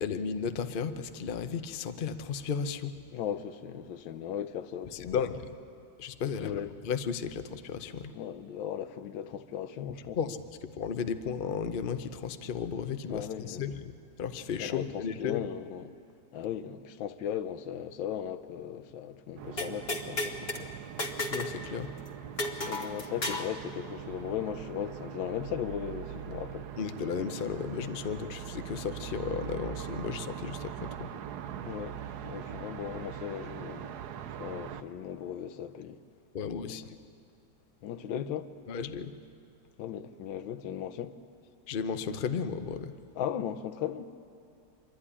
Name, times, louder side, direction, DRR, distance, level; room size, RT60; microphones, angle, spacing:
voice 1, 0.0-2.9 5.0-5.4 6.0-8.1 10.2-10.4 10.8-15.4 21.3-21.9 26.8-31.1 36.3-36.8 38.7-39.1 41.7-42.9, left 6 dB, 60° left, 0.5 m, -34 dB
voice 2, 3.1-5.2 6.4-6.7 8.1-10.3 13.1-13.6 14.6-15.9 16.3-20.7 22.6-26.7 31.6-34.0 34.4-36.0 36.6-36.8 37.8-38.5 39.8-41.1 43.1-44.1, left 9 dB, 90° left, 1.5 m, -37 dB
sound 1, 19.4-34.8, right 9 dB, 65° right, 1.1 m, -42 dB
sound 2, 19.6-20.6 21.0-21.6 21.8-21.9 22.4-23.5, left 2 dB, 35° left, 1.4 m, -33 dB
26.0 x 11.5 x 9.9 m
omnidirectional pair, 2.0 m